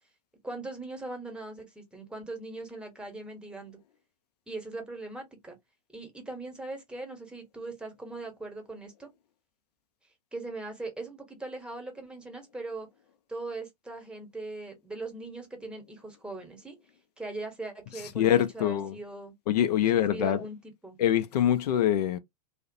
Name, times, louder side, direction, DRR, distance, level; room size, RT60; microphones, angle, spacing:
voice 1, 0.4-3.8 4.5-5.6 5.9-9.1 10.3-12.9 13.3-16.8 17.2-19.3 19.9-20.6 20.8-21.0, right 2 dB, 5° right, 0.9 m, -40 dB
voice 2, 18.2-19.0 19.5-20.4 21.0-22.2, left 10 dB, 70° left, 0.5 m, -24 dB
2.4 x 2.0 x 2.5 m
hypercardioid pair, 105°, 21 cm